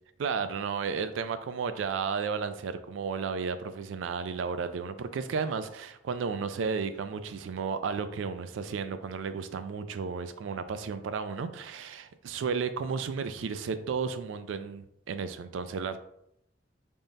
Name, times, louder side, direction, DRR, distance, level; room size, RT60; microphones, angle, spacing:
voice 1, 0.2-16.0, right 5 dB, 75° right, 11 dB, 0.3 m, -33 dB
3.5 x 2.1 x 3.9 m, 0.74 s
head